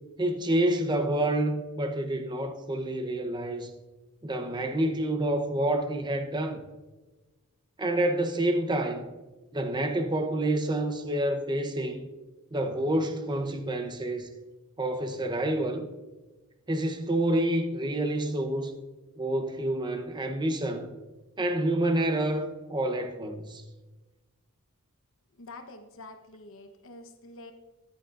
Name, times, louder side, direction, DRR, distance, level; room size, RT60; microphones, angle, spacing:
voice 1, 0.2-3.7 4.2-6.6 7.8-9.1 9.5-12.0 12.5-14.3 14.8-15.9 16.7-18.8 19.2-20.9 21.4-23.6, right 1 dB, 20° right, 0.8 m, -28 dB
voice 2, 25.3-27.5, left 2 dB, 60° left, 0.9 m, -47 dB
14.0 x 10.0 x 2.5 m
head